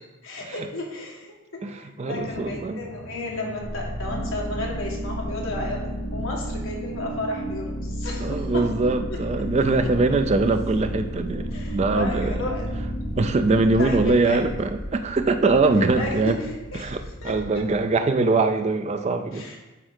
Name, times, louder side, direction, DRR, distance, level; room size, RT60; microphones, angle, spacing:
voice 1, 0.2-8.6 9.6-9.7 11.5-12.7 13.7-14.5 15.9-16.4 16.7-16.9 17.2-17.3 19.3-19.6, left 2 dB, 60° left, -2 dB, 1.4 m, -33 dB
voice 2, 1.6-2.9 8.2-12.4 13.2-16.4 16.7-19.5, right 3 dB, 30° right, 8 dB, 0.3 m, -22 dB
sound 1, 2.1-7.2 9.4-17.8, equal, 20° left, 2.2 m, -41 dB
sound 2, 3.6-15.4, equal, 35° left, 0.9 m, -32 dB
8.9 x 3.6 x 3.5 m, 1.1 s
head